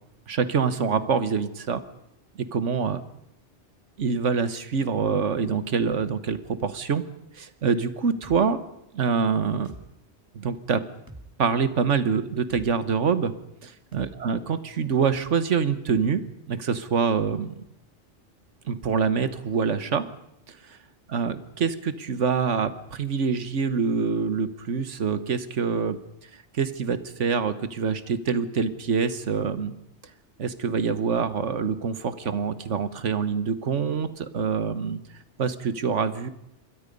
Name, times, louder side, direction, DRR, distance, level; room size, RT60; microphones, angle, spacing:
voice 1, 0.3-1.8 2.4-3.0 4.0-7.0 7.3-8.6 8.9-9.7 10.3-10.8 11.4-13.3 13.9-16.2 16.5-17.5 18.7-20.0 21.1-26.0 26.5-29.7 30.4-35.0 35.4-36.3, right 5 dB, 90° right, 12 dB, 1.6 m, -25 dB
sound 1, 8.2-8.4 9.6-9.8 11.1-11.3 12.5-12.7 13.9-14.1, right 1 dB, 20° right, 1.8 m, -43 dB
26.5 x 22.5 x 5.4 m, 0.80 s
omnidirectional pair, 1.2 m